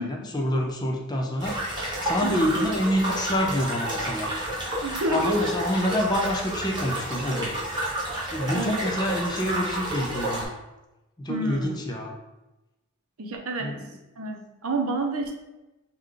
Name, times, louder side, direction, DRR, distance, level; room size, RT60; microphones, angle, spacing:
voice 1, 0.0-4.3 5.1-7.5 8.3-10.5 11.2-12.1 13.6-13.9, equal, 20° left, 1 dB, 0.4 m, -27 dB
sound 1, 1.4-10.4, right 1 dB, 20° right, 1.0 m, -30 dB
voice 2, 4.8-5.5 8.5-8.8 11.3-11.7 13.2-13.7 14.2-15.3, right 1 dB, 70° right, 3 dB, 0.6 m, -29 dB
4.9 x 2.2 x 3.7 m, 1.0 s
head